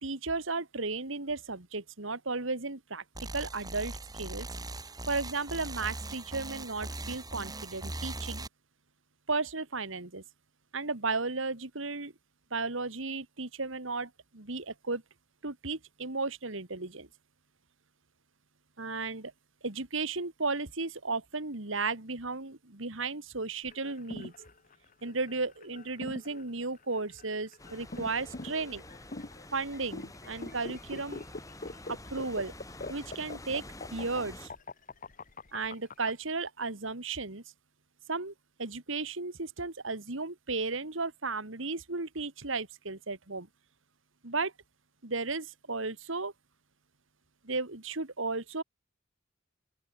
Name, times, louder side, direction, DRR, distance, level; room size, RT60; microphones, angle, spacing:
voice 1, 0.0-3.0 3.3-4.5 5.1-8.5 9.3-10.2 10.7-12.1 12.5-15.0 15.4-17.1 18.8-19.3 19.6-24.3 25.0-28.8 29.5-31.2 31.9-32.5 32.9-33.6 33.9-34.5 35.5-37.4 38.1-38.3 38.6-43.5 44.2-44.5 45.0-46.3 47.4-48.6, right 3 dB, 70° right, 2.4 m, -34 dB
sound 1, 3.1-8.5, right 2 dB, 20° right, 3.4 m, -40 dB
sound 2, 23.7-36.1, left 2 dB, 40° left, 1.4 m, -43 dB
sound 3, 27.6-34.5, left 1 dB, 15° left, 7.9 m, -48 dB
open air
head